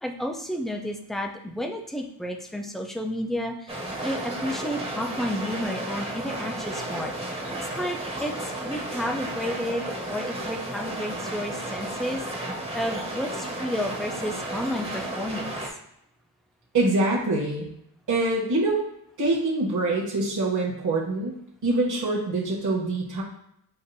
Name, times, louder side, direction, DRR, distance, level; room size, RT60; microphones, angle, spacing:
voice 1, 0.0-7.4 7.8-8.3 8.6-12.2 12.7-15.6, equal, ahead, 3 dB, 0.3 m, -31 dB
sound 1, 3.7-15.7, right 1 dB, 15° right, 0.8 m, -33 dB
voice 2, 16.7-17.7 18.1-18.8 19.2-21.3 21.6-23.2, right 2 dB, 45° right, -3 dB, 1.0 m, -24 dB
6.8 x 2.5 x 2.6 m, 0.76 s
wide cardioid pair, 140°, 42 cm